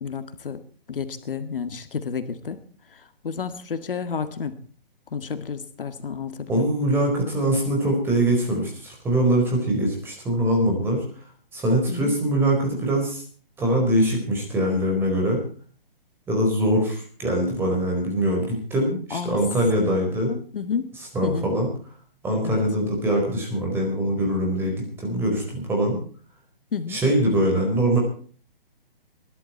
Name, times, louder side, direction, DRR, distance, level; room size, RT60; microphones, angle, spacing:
voice 1, 0.0-0.6 0.9-2.6 3.2-4.6 5.1-6.7 11.9-12.1 19.1-19.5 19.8-19.9 20.3-20.9 21.2-21.5 22.4-22.6 26.7-27.0, left 6 dB, 65° left, 10 dB, 2.0 m, -30 dB
voice 2, 6.5-11.0 11.5-13.2 13.6-15.4 16.3-20.3 21.0-21.7 22.2-26.0 26.9-28.0, right 1 dB, 10° right, 0 dB, 4.6 m, -23 dB
22.5 x 11.5 x 4.4 m, 0.43 s
hypercardioid pair, 160°, 29 cm